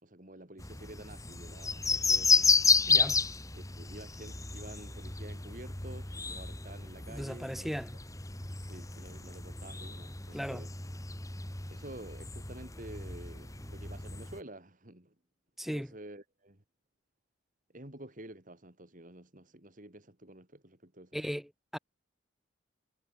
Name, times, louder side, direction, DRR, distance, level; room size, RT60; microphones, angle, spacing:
voice 1, 0.0-2.6 3.5-7.8 8.6-10.7 11.7-15.1 15.7-16.6 17.7-21.2, right 1 dB, 40° right, 3.5 m, -50 dB
sound 1, 0.6-14.4, left 4 dB, 15° left, 2.4 m, -32 dB
voice 2, 2.9-3.2 7.1-8.0 10.3-10.7 15.6-15.9 21.1-21.8, equal, ahead, 2.5 m, -37 dB
head